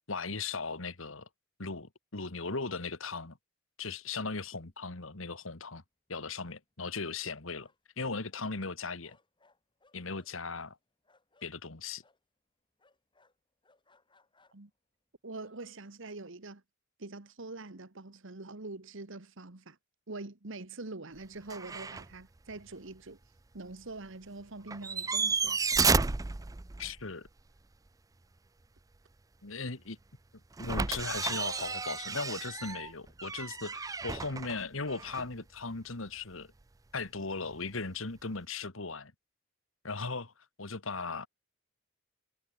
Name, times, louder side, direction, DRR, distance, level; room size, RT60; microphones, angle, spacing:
voice 1, 0.1-1.3 1.6-3.4 3.8-5.8 6.1-7.7 8.0-9.2 9.9-10.8 11.4-12.0 26.8-27.3 29.4-30.0 30.6-36.5 36.9-39.1 39.8-40.3 40.6-41.3, left 4 dB, 70° left, 2.0 m, -37 dB
sound 1, 4.7-5.4 5.6-5.7 6.1-8.0 8.3-11.5 12.0-12.2 12.8-14.8 15.3-15.6, left 3 dB, 25° left, 6.3 m, -68 dB
voice 2, 15.2-16.6 17.0-19.8 20.1-23.2 23.5-25.7, right 2 dB, 65° right, 1.6 m, -44 dB
sound 2, 21.5-22.1 22.5-22.6 24.7-27.0 30.6-35.4 37.5-37.6, right 4 dB, 15° right, 0.4 m, -32 dB
head